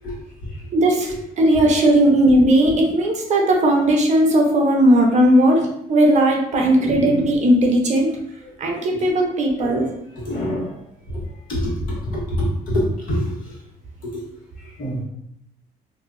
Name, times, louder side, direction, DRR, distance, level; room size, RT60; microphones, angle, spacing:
voice 1, 0.0-0.7 1.1-1.2 6.8-7.2 8.9-9.1 9.6-10.8 11.1-11.2 11.5-13.6 14.0-14.2 14.6-15.0, equal, 55° left, -4 dB, 1.4 m, -26 dB
voice 2, 0.7-8.1 8.6-9.9, right 1 dB, 45° right, 0 dB, 0.7 m, -17 dB
2.7 x 2.3 x 3.8 m, 0.74 s
cardioid pair, 110°, 17 cm